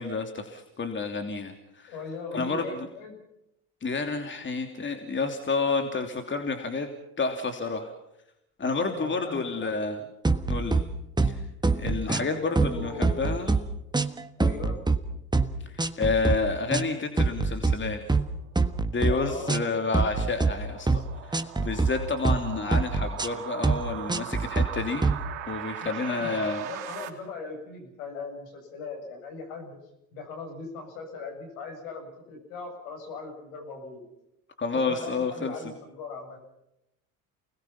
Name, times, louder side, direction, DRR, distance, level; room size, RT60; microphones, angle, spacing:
voice 1, 0.0-1.9 2.3-2.9 3.8-6.9 7.2-7.9 8.6-10.0 10.5-10.9 11.2-11.4 11.8-13.6 15.6-18.0 18.9-26.7 34.6-35.7, left 4 dB, 25° left, 5 dB, 3.1 m, -30 dB
voice 2, 1.9-3.1 8.9-9.7 12.1-13.4 14.4-14.8 19.0-19.6 25.8-29.8 30.1-34.0 34.9-36.4, left 4 dB, 75° left, 4 dB, 7.6 m, -39 dB
sound 1, 10.2-10.8 11.2-11.4 11.6-12.3 12.6-13.6 13.9-15.0 15.3-15.5 15.8-16.4 16.7-16.9 17.2-17.7 18.1-18.3 18.6-19.1 19.5-19.7 19.9-20.5 20.9-21.1 21.3-21.9 22.2-22.4 22.7-23.3 23.6-23.8 24.1-24.7 25.0-25.2, right 3 dB, 10° right, 1.5 m, -24 dB
sound 2, 18.4-27.1, right 11 dB, 75° right, 3.2 m, -40 dB
29.5 x 20.5 x 5.8 m, 0.84 s
hypercardioid pair, 70°, 42 cm